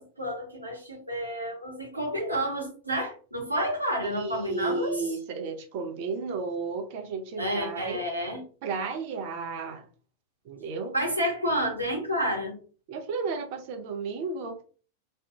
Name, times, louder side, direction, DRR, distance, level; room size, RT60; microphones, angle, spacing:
voice 1, 0.0-5.0 7.4-8.4 10.9-12.6, equal, 85° right, -1 dB, 0.9 m, -30 dB
voice 2, 4.0-8.0 8.6-9.8 10.4-11.0 12.9-14.5, right 4 dB, 45° right, 5 dB, 0.6 m, -33 dB
2.5 x 2.2 x 2.8 m, 0.40 s
figure-of-eight pair, 90°, 0 cm